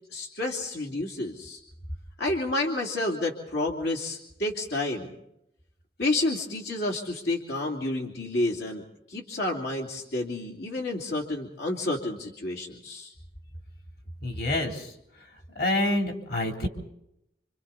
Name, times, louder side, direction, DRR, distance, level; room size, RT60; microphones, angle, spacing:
voice 1, 0.1-1.6 2.2-5.1 6.0-13.1, left 2 dB, 75° left, -1 dB, 2.9 m, -30 dB
voice 2, 14.2-14.9 15.6-16.7, left 1 dB, 60° left, 2 dB, 3.6 m, -27 dB
28.0 x 27.0 x 4.2 m, 0.79 s
head